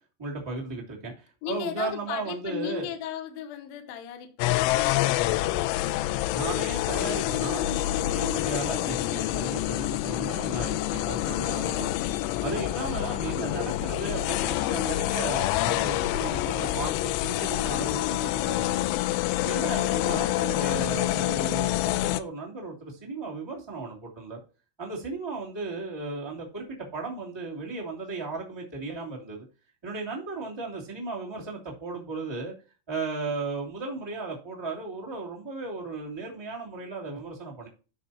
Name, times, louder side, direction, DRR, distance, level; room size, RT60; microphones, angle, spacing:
voice 1, 0.2-2.9 6.3-11.9 12.4-18.8 19.4-24.4 24.8-26.6 26.9-29.4 29.8-32.5 32.9-37.7, right 3 dB, 15° right, 1.0 m, -35 dB
voice 2, 1.4-6.1 11.7-12.2 19.9-20.3, left 9 dB, 70° left, 2.5 m, -37 dB
sound 1, 4.4-22.2, left 16 dB, 85° left, 2.9 m, -27 dB
13.0 x 5.1 x 2.8 m
omnidirectional pair, 5.7 m